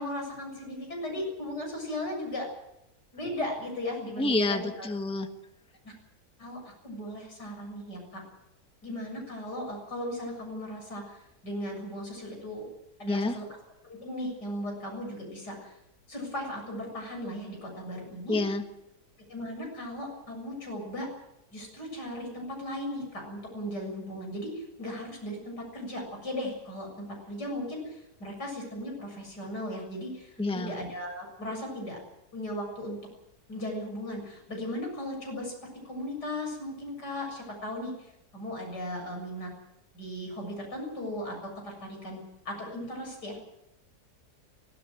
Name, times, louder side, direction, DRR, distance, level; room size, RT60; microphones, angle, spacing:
voice 1, 0.0-2.5 3.1-4.9 5.8-5.9 6.4-8.2 8.8-12.7 13.0-13.5 13.8-15.8 16.1-18.4 19.3-21.1 21.5-32.0 32.3-33.0 33.5-35.5 35.8-39.5 39.9-43.4, left 1 dB, 85° left, 1 dB, 7.8 m, -37 dB
voice 2, 4.2-5.3 13.1-13.3 18.3-18.6 30.4-30.7, left 2 dB, 5° left, 6 dB, 1.3 m, -28 dB
24.5 x 17.0 x 7.8 m, 0.84 s
omnidirectional pair, 1.8 m